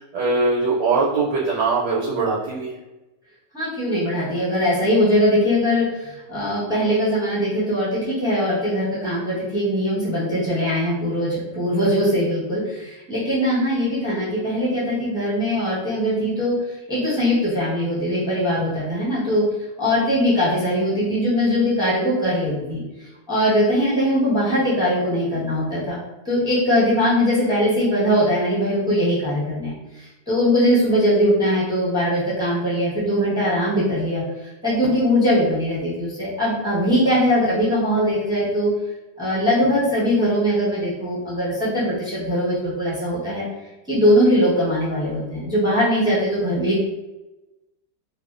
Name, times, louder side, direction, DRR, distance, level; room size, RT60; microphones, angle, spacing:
voice 1, 0.1-2.8, right 3 dB, 80° right, -5 dB, 1.2 m, -21 dB
voice 2, 3.5-16.5 16.9-19.4 19.8-22.8 23.3-25.9 26.2-34.2 34.6-38.7 39.2-43.4 43.9-46.8, equal, 5° right, -10 dB, 0.6 m, -21 dB
2.7 x 2.2 x 2.4 m, 1.0 s
omnidirectional pair, 1.9 m